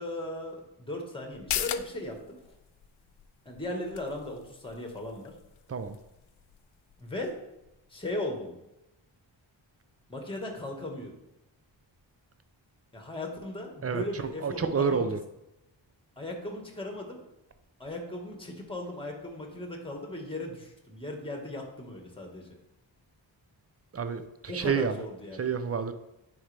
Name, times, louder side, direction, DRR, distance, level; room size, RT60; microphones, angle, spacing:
voice 1, 0.0-2.4 3.4-5.3 7.0-7.4 7.9-8.5 10.1-11.2 12.9-15.1 16.2-17.2 17.8-22.6 24.5-25.4, left 1 dB, 10° left, 1 dB, 1.6 m, -37 dB
sound 1, 1.3-8.4 8.8-8.9, left 11 dB, 85° left, 0.5 m, -41 dB
voice 2, 13.8-15.2 23.9-25.0 25.3-25.9, right 6 dB, 30° right, 10 dB, 0.6 m, -29 dB
9.6 x 4.7 x 3.4 m, 0.91 s
wide cardioid pair, 95°, 47 cm